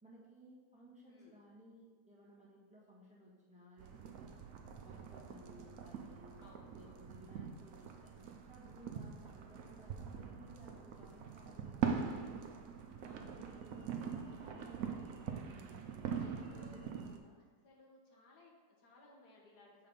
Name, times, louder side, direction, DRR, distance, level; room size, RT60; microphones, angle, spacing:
voice 1, 0.0-4.4 4.8-6.4 6.7-12.5 13.1-15.8 16.2-17.4, right 1 dB, 5° right, -6 dB, 1.4 m, -59 dB
voice 2, 1.1-1.4 6.4-7.1 13.0-13.3 14.7-15.1 16.3-16.9 17.6-19.9, left 2 dB, 75° left, -1 dB, 1.7 m, -62 dB
sound 1, 3.8-17.2, right 6 dB, 65° right, 1.0 m, -43 dB
7.2 x 3.9 x 5.2 m, 1.4 s
omnidirectional pair, 1.7 m